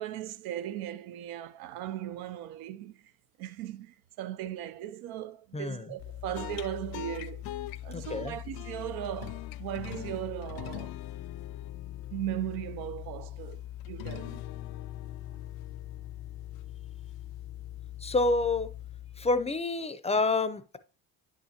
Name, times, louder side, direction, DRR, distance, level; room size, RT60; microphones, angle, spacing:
voice 1, 0.0-3.1 3.4-7.5 7.8-11.0 12.1-14.4, right 12 dB, 75° right, 0.6 m, -38 dB
voice 2, 5.5-5.9 7.9-8.4 18.0-18.7 19.2-20.8, left 3 dB, 15° left, 0.6 m, -28 dB
sound 1, 6.0-19.6, left 13 dB, 75° left, 0.5 m, -41 dB
9.6 x 5.8 x 2.8 m
supercardioid pair, 85°, 38 cm